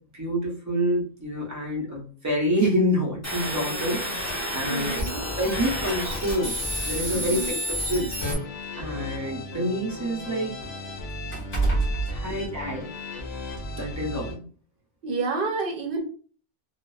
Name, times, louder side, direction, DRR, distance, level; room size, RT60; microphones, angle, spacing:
voice 1, 0.1-5.0 5.4-6.5 6.9-8.1 8.8-10.5 12.1-12.9 13.7-14.4, equal, 20° right, -2 dB, 0.5 m, -27 dB
sound 1, 3.2-8.3, equal, 15° left, 1.1 m, -30 dB
sound 2, 4.5-4.7 5.7-5.8 6.3-6.4 7.3-9.3 9.7-13.1 13.5-13.7, right 3 dB, 60° left, 1.4 m, -30 dB
voice 2, 4.7-5.2 7.1-7.5 12.3-12.4 15.0-16.0, right 3 dB, 60° right, 3 dB, 0.8 m, -29 dB
sound 3, 5.2-14.3, left 2 dB, 85° left, 0.9 m, -37 dB
2.9 x 2.0 x 2.2 m, 0.41 s
omnidirectional pair, 1.1 m